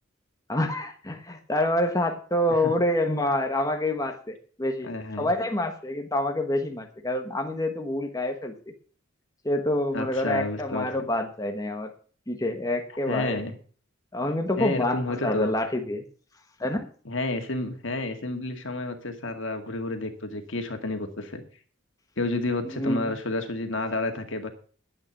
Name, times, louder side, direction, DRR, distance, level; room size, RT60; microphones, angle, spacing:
voice 1, 0.5-4.9 5.2-8.7 9.4-11.9 12.3-13.4 14.1-16.0 16.6-16.9 22.7-23.1, left 1 dB, 15° left, 4 dB, 1.2 m, -27 dB
voice 2, 4.8-5.3 9.9-10.9 13.1-13.6 14.6-15.5 17.1-21.4 22.2-24.5, left 2 dB, 65° left, 6 dB, 2.1 m, -30 dB
12.0 x 8.9 x 6.0 m, 0.42 s
head